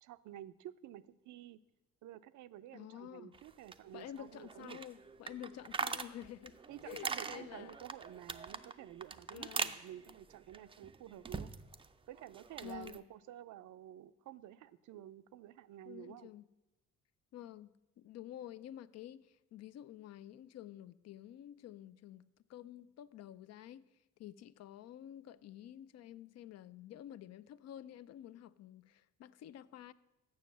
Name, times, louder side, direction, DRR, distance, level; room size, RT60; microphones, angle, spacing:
voice 1, 0.0-1.6 2.0-4.8 6.7-11.5 12.1-16.3, right 12 dB, 75° right, 0.5 m, -51 dB
voice 2, 2.7-3.3 3.9-6.6 6.9-7.8 9.3-9.8 12.6-13.0 15.9-16.4 17.3-17.7 18.0-23.9 24.2-29.9, left 11 dB, 60° left, 0.4 m, -50 dB
sound 1, 3.3-11.9 12.1-13.0, right 5 dB, 20° right, 0.4 m, -43 dB
7.2 x 6.6 x 7.1 m
cardioid pair, 90°, 30 cm